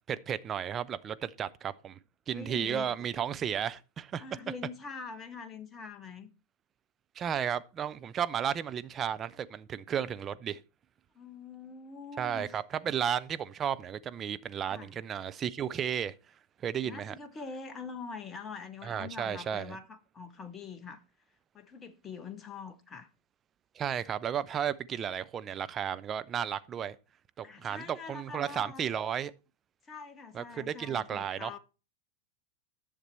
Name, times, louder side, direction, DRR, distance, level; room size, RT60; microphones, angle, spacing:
voice 1, 0.1-2.0 2.3-4.2 7.2-10.6 12.2-16.1 16.6-17.1 18.8-19.8 23.8-27.0 27.4-29.3 30.3-31.5, right 8 dB, 25° right, 0.5 m, -33 dB
voice 2, 2.3-3.1 4.2-6.3 11.1-12.5 14.7-14.9 16.8-21.0 21.5-23.1 27.4-28.9 29.8-31.6, left 5 dB, 20° left, 0.9 m, -44 dB
10.5 x 6.6 x 4.4 m
figure-of-eight pair, 90°, 0 cm